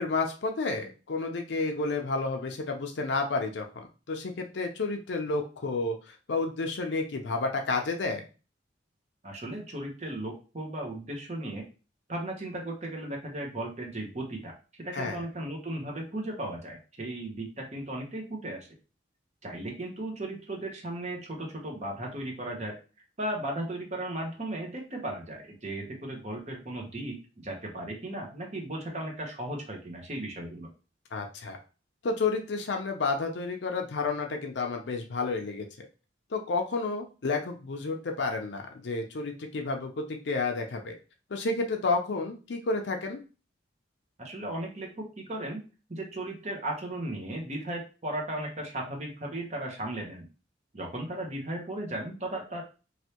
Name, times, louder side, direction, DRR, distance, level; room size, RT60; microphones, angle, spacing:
voice 1, 0.0-8.2 14.9-15.2 31.1-31.6 32.0-35.7 36.3-41.0 41.3-43.2, left 3 dB, 65° left, 3 dB, 0.5 m, -31 dB
voice 2, 9.2-11.6 12.1-14.5 14.8-18.7 19.4-22.8 23.2-30.7 44.2-45.6 45.9-50.3 50.7-52.6, right 1 dB, 35° right, 0 dB, 0.9 m, -36 dB
3.2 x 2.6 x 2.8 m, 0.34 s
head